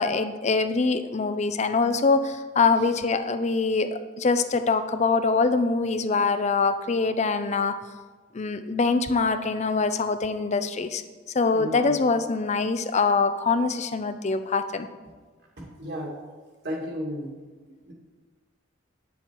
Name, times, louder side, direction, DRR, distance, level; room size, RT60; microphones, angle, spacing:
voice 1, 0.0-7.8 8.3-11.0 11.3-14.9, left 4 dB, 35° left, 10 dB, 0.5 m, -24 dB
voice 2, 11.5-11.9 15.6-16.2 16.6-17.4 17.8-17.9, equal, 60° right, -2 dB, 2.0 m, -34 dB
9.0 x 7.0 x 4.5 m, 1.4 s
head